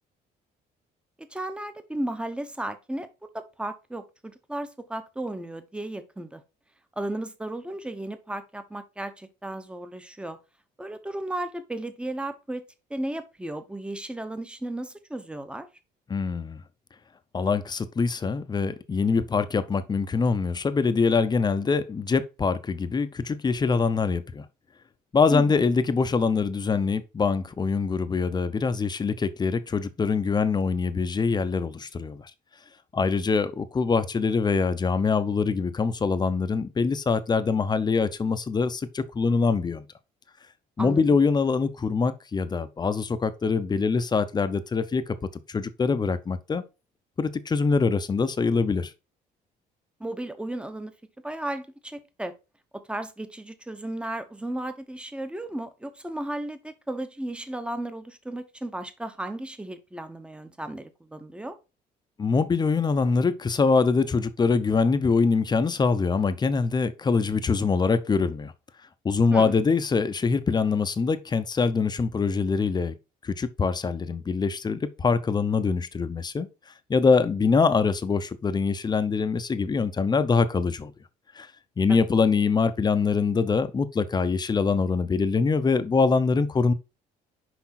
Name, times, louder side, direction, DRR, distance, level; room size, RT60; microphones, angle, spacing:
voice 1, 1.3-3.1 3.3-6.4 7.0-10.4 10.8-12.6 12.9-15.7 25.3-25.5 40.8-41.2 50.0-50.9 51.2-52.3 52.7-61.6 69.3-69.5 81.9-82.0, right 1 dB, 5° right, 0.9 m, -34 dB
voice 2, 16.1-16.6 17.3-24.4 25.1-32.3 32.9-39.8 40.8-45.2 45.5-46.6 47.2-48.9 62.2-68.5 69.0-72.9 73.2-76.5 76.9-80.9 81.4-81.5 81.8-86.7, left 4 dB, 25° left, 0.7 m, -24 dB
6.1 x 5.1 x 4.2 m
cardioid pair, 110°, 17 cm